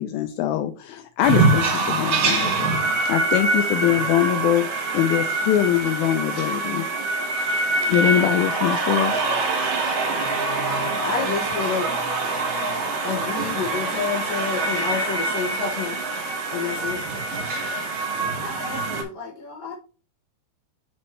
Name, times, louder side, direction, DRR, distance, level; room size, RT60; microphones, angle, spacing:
voice 1, 0.0-2.8 3.1-6.9 7.9-9.1 9.8-10.0, left 12 dB, 90° left, 2.1 m, -23 dB
sound 1, 1.2-19.0, right 3 dB, 50° right, 1.9 m, -24 dB
voice 2, 11.0-11.9 13.0-16.0 16.5-17.0, left 5 dB, 70° left, 2.3 m, -28 dB
voice 3, 18.4-19.7, left 4 dB, 20° left, 1.9 m, -37 dB
8.6 x 4.3 x 3.1 m
omnidirectional pair, 4.7 m